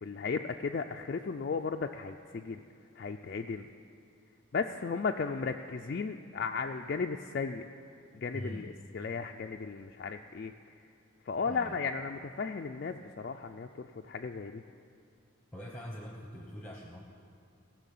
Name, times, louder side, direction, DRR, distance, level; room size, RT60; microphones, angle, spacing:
voice 1, 0.0-2.6 3.0-3.7 4.5-7.6 8.1-10.5 10.8-10.9 11.2-14.6, left 5 dB, 45° left, 4 dB, 0.3 m, -35 dB
voice 2, 8.3-8.7 11.4-11.8 15.5-17.0, equal, 10° left, -1 dB, 0.9 m, -43 dB
17.0 x 6.3 x 8.4 m, 2.4 s
head